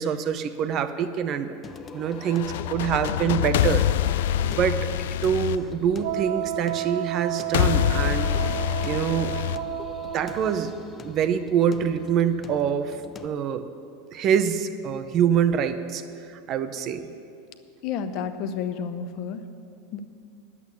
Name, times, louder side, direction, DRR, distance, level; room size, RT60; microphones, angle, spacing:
voice 1, 0.0-1.5 1.9-3.8 4.4-4.9 5.2-8.3 8.8-9.4 10.1-10.8 11.0-13.0 13.2-13.7 14.1-16.0 16.3-17.1, right 8 dB, 30° right, 10 dB, 0.7 m, -25 dB
Singing, 1.6-13.3, left 5 dB, 20° left, 0.5 m, -43 dB
sound 1, 2.3-6.4 7.5-10.4, left 12 dB, 75° left, 0.3 m, -25 dB
Wind instrument woodwind instrument, 6.0-10.7, right 14 dB, 75° right, 0.5 m, -32 dB
voice 2, 17.8-19.4 19.9-20.0, left 7 dB, 45° left, 10 dB, 0.8 m, -30 dB
10.5 x 8.5 x 9.5 m, 2.5 s
supercardioid pair, 160°, 0 cm